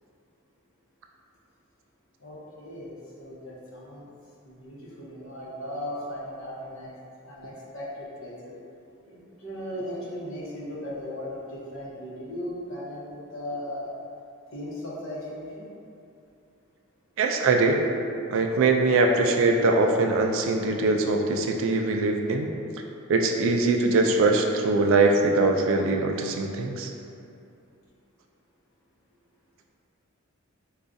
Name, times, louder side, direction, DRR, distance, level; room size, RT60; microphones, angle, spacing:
voice 1, 2.2-4.1 4.4-6.9 7.2-8.5 9.1-13.9 14.5-15.7, left 1 dB, 70° left, -7 dB, 0.9 m, -37 dB
voice 2, 17.2-17.8 18.3-22.5 23.1-26.9, right 3 dB, 65° right, 3 dB, 0.3 m, -22 dB
4.7 x 2.3 x 2.6 m, 2.6 s
head